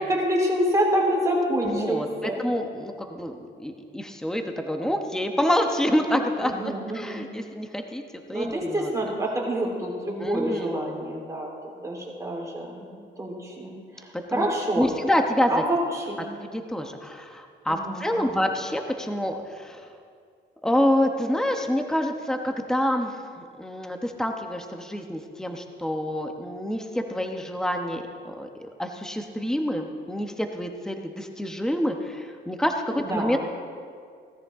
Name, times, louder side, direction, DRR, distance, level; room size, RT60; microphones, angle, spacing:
voice 1, 0.1-2.4 6.4-7.2 8.3-11.5 11.8-12.9 13.2-14.9 15.5-16.2 17.7-18.4 32.9-33.4, right 1 dB, 15° right, -3 dB, 3.8 m, -27 dB
voice 2, 1.6-8.0 8.3-8.9 10.2-10.7 14.1-14.5 14.8-15.6 16.2-19.9 20.6-33.4, left 1 dB, 5° left, 4 dB, 1.1 m, -27 dB
17.0 x 13.5 x 3.7 m, 2.2 s
cardioid pair, 90°, 20 cm